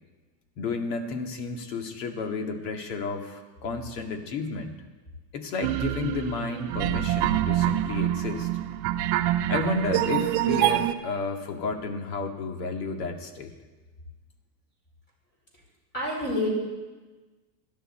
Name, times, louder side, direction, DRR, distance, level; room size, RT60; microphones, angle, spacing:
voice 1, 0.6-4.7 5.3-8.5 9.5-13.5, left 4 dB, 75° left, 4 dB, 2.2 m, -32 dB
sound 1, 5.6-10.9, right 14 dB, 35° right, 0.6 m, -26 dB
voice 2, 15.9-16.5, left 1 dB, 20° left, -3 dB, 4.9 m, -28 dB
17.5 x 11.5 x 4.4 m, 1.3 s
supercardioid pair, 155°, 50 cm